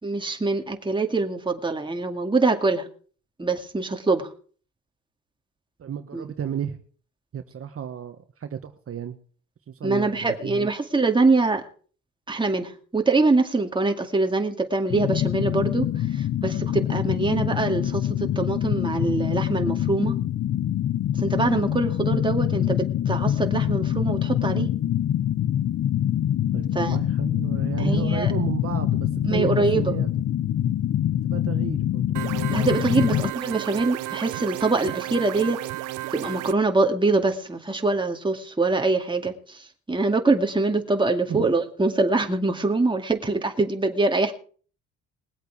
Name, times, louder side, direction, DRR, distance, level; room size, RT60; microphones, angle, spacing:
voice 1, 0.0-2.9 3.4-4.3 6.1-6.2 9.8-11.6 12.3-20.2 21.2-24.7 26.7-27.0 27.8-28.3 29.2-29.9 32.5-35.6 36.1-44.3, right 3 dB, 15° right, 4 dB, 2.2 m, -24 dB
voice 2, 5.8-6.8 7.3-9.2 9.7-10.7 26.5-30.1 31.2-32.2 33.0-33.1 41.3-41.5, right 8 dB, 50° right, 7 dB, 1.3 m, -33 dB
sound 1, 14.9-33.3, left 11 dB, 55° left, 0.7 m, -25 dB
sound 2, 32.1-36.5, right 17 dB, 85° right, 0.7 m, -33 dB
21.0 x 8.2 x 4.8 m, 0.43 s
cardioid pair, 90°, 30 cm